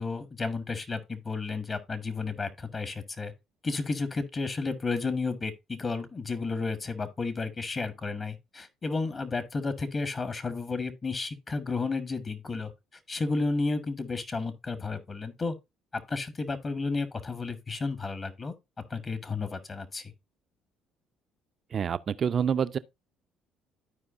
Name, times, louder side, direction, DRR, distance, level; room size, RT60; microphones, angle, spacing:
voice 1, 0.0-3.3 3.6-12.7 13.1-15.5 15.9-18.5 18.9-20.1, left 3 dB, 35° left, 1.4 m, -32 dB
voice 2, 21.7-22.8, right 7 dB, 50° right, 0.5 m, -27 dB
13.5 x 4.7 x 2.5 m
supercardioid pair, 75°, 0 cm